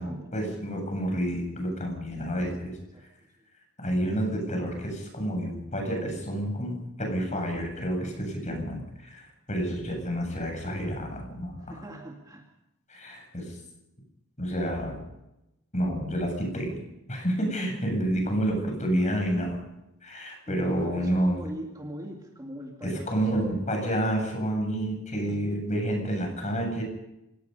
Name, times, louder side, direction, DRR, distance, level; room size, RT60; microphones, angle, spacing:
voice 1, 0.3-2.8 3.8-6.7 7.0-11.7 12.9-13.6 14.4-15.0 15.7-16.8 17.1-19.6 20.0-21.4 22.8-26.8, equal, 35° left, 2 dB, 8.0 m, -29 dB
voice 2, 11.6-12.5 20.5-23.7 25.2-25.6, right 1 dB, 15° right, 1 dB, 2.2 m, -40 dB
27.0 x 18.0 x 5.5 m, 0.91 s
head